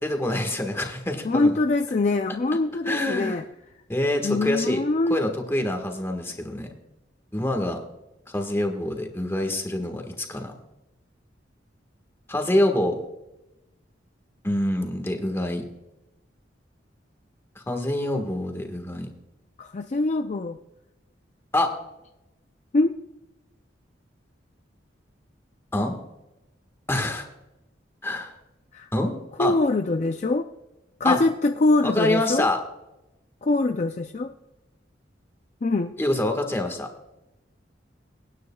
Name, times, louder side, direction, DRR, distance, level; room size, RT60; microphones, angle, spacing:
voice 1, 0.0-1.6 2.8-3.4 3.9-4.8 5.1-6.7 7.3-7.8 8.3-10.5 12.3-13.0 14.4-15.6 17.5-19.1 21.5-21.7 25.7-26.0 26.9-27.3 28.0-28.3 28.9-29.1 29.4-29.5 31.0-31.2 31.8-32.6 36.0-36.9, left 1 dB, 15° left, 4 dB, 1.5 m, -26 dB
voice 2, 1.2-3.4 4.2-5.2 19.6-20.6 22.7-22.9 28.7-28.9 29.4-30.5 31.0-32.5 33.4-34.3 35.6-35.9, left 2 dB, 40° left, 6 dB, 0.4 m, -23 dB
24.0 x 9.5 x 2.3 m, 0.94 s
head